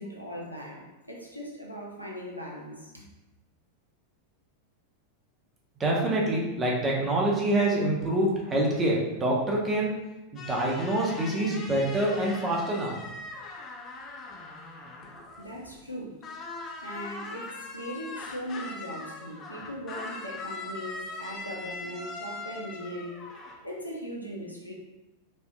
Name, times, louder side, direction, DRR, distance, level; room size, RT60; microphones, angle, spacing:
voice 1, 0.0-3.0 15.4-16.2 16.8-23.2 23.6-24.7, equal, 90° left, -3 dB, 0.6 m, -39 dB
voice 2, 5.8-9.9 10.3-12.9, right 1 dB, 20° right, -3 dB, 0.8 m, -26 dB
sound 1, 10.4-15.9 16.2-23.6, left 3 dB, 30° left, 0.5 m, -41 dB
4.3 x 2.7 x 2.3 m, 1.0 s
figure-of-eight pair, 90°, 0 cm